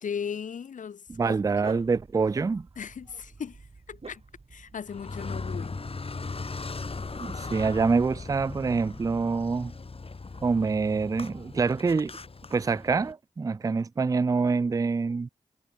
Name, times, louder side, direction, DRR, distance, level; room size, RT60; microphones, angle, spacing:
voice 1, 0.0-1.4 2.8-4.2 4.5-5.8, left 7 dB, 80° left, 1.0 m, -37 dB
Dog, 1.1-7.0, right 3 dB, 50° right, 4.6 m, -48 dB
voice 2, 1.2-2.7 7.2-9.7 10.4-12.1 12.5-15.3, right 4 dB, 25° right, 0.3 m, -26 dB
Car, 4.9-13.1, left 4 dB, 50° left, 2.0 m, -38 dB
cardioid pair, 45°, 13 cm